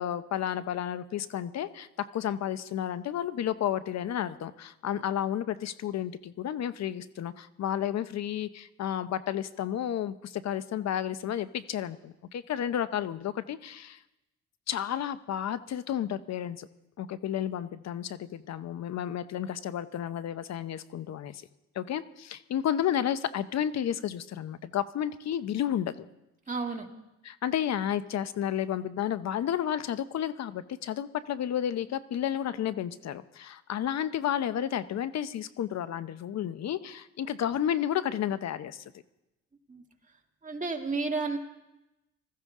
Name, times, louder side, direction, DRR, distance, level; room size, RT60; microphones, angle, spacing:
voice 1, 0.0-14.0 14.7-16.7 17.0-21.4 21.7-26.0 27.2-38.8, left 10 dB, 60° left, 14 dB, 0.8 m, -32 dB
voice 2, 26.5-26.9 39.7-39.8 40.4-41.4, right 4 dB, 25° right, 3 dB, 1.9 m, -31 dB
20.0 x 14.5 x 3.7 m, 0.94 s
cardioid pair, 90°, 30 cm